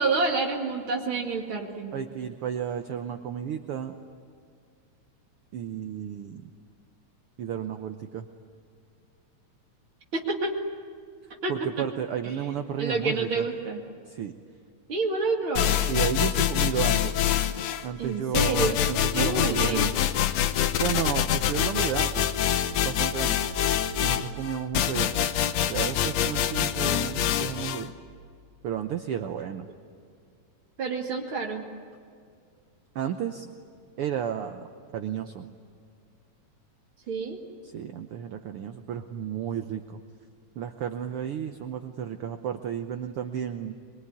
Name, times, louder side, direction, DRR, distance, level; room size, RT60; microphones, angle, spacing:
voice 1, 0.0-1.9 10.1-10.5 11.4-11.5 12.8-13.8 14.9-15.8 18.0-18.8 19.2-19.9 30.8-31.6 37.1-37.4, right 4 dB, 45° right, 1 dB, 2.9 m, -28 dB
voice 2, 1.9-4.0 5.5-6.5 7.4-8.3 11.5-13.5 14.0-14.4 15.9-17.2 17.8-19.9 20.8-22.3 22.8-23.4 24.0-25.1 25.6-27.9 28.6-29.7 32.9-33.5 34.0-35.5 37.6-40.0 40.5-43.8, right 9 dB, 65° right, 7 dB, 1.5 m, -32 dB
sound 1, 15.6-17.9 18.3-27.8, left 10 dB, 70° left, 2.0 m, -25 dB
23.5 x 23.0 x 9.8 m, 2.2 s
omnidirectional pair, 3.3 m